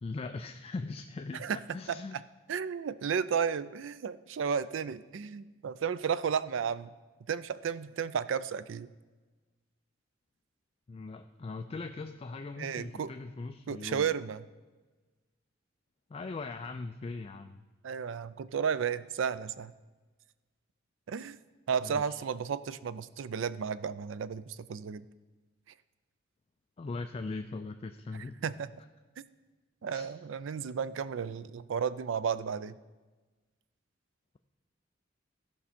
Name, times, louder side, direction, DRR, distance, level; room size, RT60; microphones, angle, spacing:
voice 1, 0.0-2.2 10.9-14.1 16.1-17.6 21.8-22.2 26.8-28.4 29.9-30.1, left 3 dB, 30° left, 7 dB, 0.3 m, -40 dB
voice 2, 2.5-6.9 7.3-8.9 12.6-13.1 13.7-14.4 17.8-19.7 21.1-21.4 21.7-25.0 28.4-28.7 29.8-32.8, right 7 dB, 70° right, 16 dB, 0.4 m, -33 dB
15.0 x 5.5 x 4.2 m, 1.3 s
head